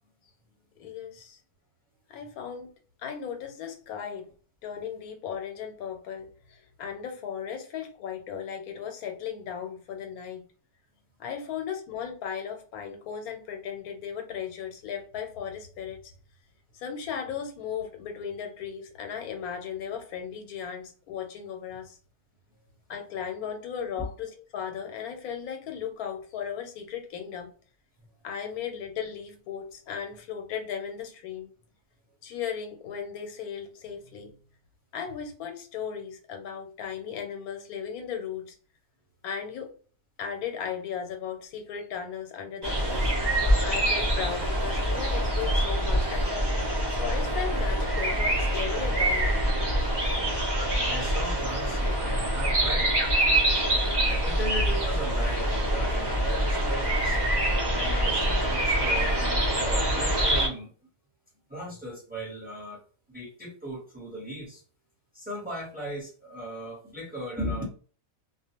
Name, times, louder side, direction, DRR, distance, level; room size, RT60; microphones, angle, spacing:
voice 1, 0.8-1.4 2.1-2.7 3.0-4.3 4.6-10.5 11.2-16.1 16.7-22.0 22.9-27.5 28.2-31.5 32.2-34.3 34.9-38.6 39.2-39.8 40.2-43.1 43.6-46.7 47.0-49.3, left 8 dB, 80° left, 1.1 m, -36 dB
sound 1, 42.6-60.5, right 1 dB, 40° right, 0.3 m, -25 dB
voice 2, 50.8-53.0 53.7-57.2 57.7-60.7 61.5-62.8 63.1-64.6 65.1-67.6, right 1 dB, 10° right, 0.8 m, -37 dB
2.4 x 2.2 x 2.8 m
omnidirectional pair, 1.5 m